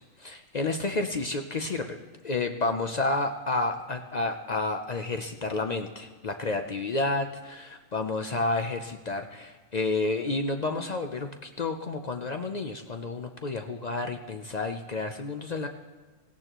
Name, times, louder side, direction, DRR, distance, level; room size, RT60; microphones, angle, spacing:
voice 1, 0.2-2.0 2.2-15.7, left 3 dB, 50° left, 6 dB, 0.5 m, -30 dB
17.5 x 16.0 x 3.0 m, 1.2 s
omnidirectional pair, 1.4 m